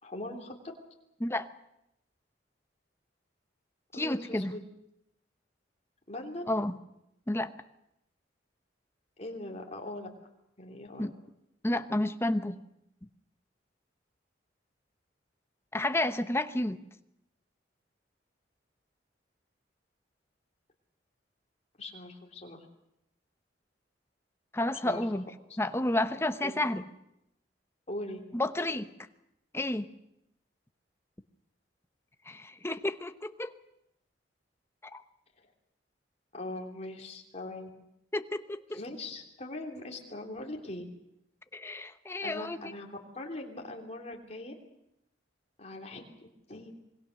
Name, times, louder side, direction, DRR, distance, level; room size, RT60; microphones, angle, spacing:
voice 1, 0.0-0.5 3.9-4.6 6.1-6.4 9.2-10.1 10.6-11.1 21.8-22.6 24.8-25.0 26.4-26.6 27.9-28.2 36.3-37.7 38.7-40.8 42.2-44.5 45.6-46.7, left 1 dB, 35° left, 1 dB, 3.1 m, -41 dB
voice 2, 3.9-4.5 6.5-6.8 7.3-7.5 11.0-11.1 11.6-12.6 15.7-16.8 24.5-25.2 25.6-26.8 28.3-28.9 29.5-29.9 32.3-33.5 34.9-35.0 38.1-38.8 41.5-42.7, left 1 dB, 15° left, 10 dB, 0.9 m, -31 dB
26.5 x 21.0 x 6.5 m, 0.83 s
head